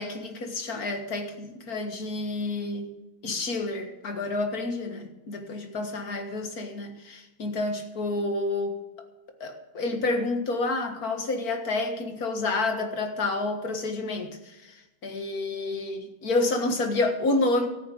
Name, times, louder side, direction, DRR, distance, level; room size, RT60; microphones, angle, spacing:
voice 1, 0.0-2.9 3.2-8.8 9.4-17.7, left 2 dB, 45° left, 5 dB, 2.0 m, -29 dB
13.5 x 8.9 x 9.3 m, 1.1 s
omnidirectional pair, 2.4 m